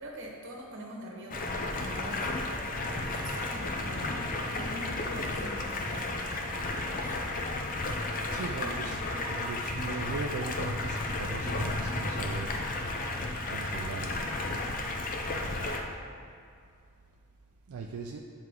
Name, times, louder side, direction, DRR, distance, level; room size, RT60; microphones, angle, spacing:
voice 1, 0.0-7.7 8.3-9.3 15.3-15.6, right 1 dB, 60° right, -2 dB, 1.2 m, -44 dB
Stream, 1.3-15.8, left 2 dB, 40° left, 0.5 m, -33 dB
voice 2, 8.3-9.0 9.3-12.6 13.5-14.3 17.7-18.2, right 4 dB, 85° right, 1 dB, 0.4 m, -38 dB
7.6 x 4.6 x 3.7 m, 2.3 s
head